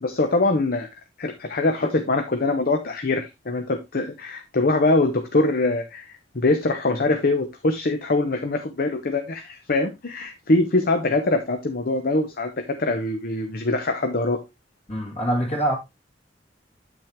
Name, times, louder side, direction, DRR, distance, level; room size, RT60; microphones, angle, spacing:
voice 1, 0.0-0.9 1.2-14.4, left 2 dB, 55° left, 0.9 m, -23 dB
voice 2, 14.9-15.7, right 1 dB, 40° left, 2.4 m, -24 dB
8.8 x 6.2 x 3.2 m
head